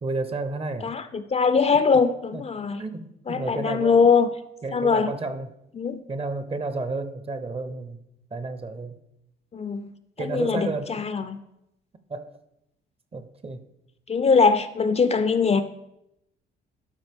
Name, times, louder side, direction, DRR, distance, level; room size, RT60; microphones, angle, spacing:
voice 1, 0.0-0.9 2.3-2.4 2.8-4.3 4.6-5.5 6.1-8.0 8.3-9.0 10.2-10.9 12.1-12.3 13.1-13.6, right 3 dB, 30° right, 11 dB, 0.7 m, -31 dB
voice 2, 0.8-2.8 3.3-4.3 4.7-5.1 5.8-6.0 9.5-9.9 10.2-11.4 14.1-15.6, left 5 dB, 30° left, 11 dB, 0.4 m, -22 dB
12.0 x 4.5 x 3.5 m, 0.83 s
cardioid pair, 90°, 20 cm